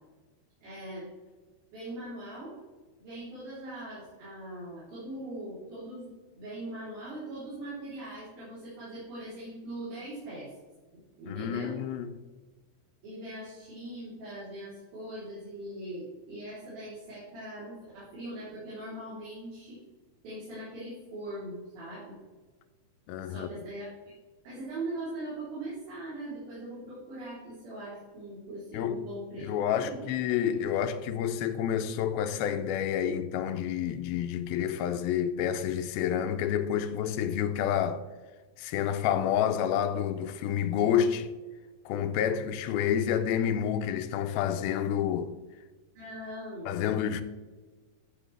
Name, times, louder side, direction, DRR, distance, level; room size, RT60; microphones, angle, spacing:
voice 1, 0.6-1.1 1.7-2.6 3.0-10.5 11.2-11.8 13.0-19.8 20.2-22.2 23.2-23.9 24.4-30.0 46.0-47.0, right 1 dB, 70° right, 5.5 m, -41 dB
voice 2, 11.3-12.1 23.1-23.5 28.7-29.1 29.4-38.0 38.6-41.3 41.9-45.3 46.7-47.2, left 9 dB, 80° left, 2.4 m, -29 dB
13.5 x 7.6 x 3.4 m
omnidirectional pair, 4.4 m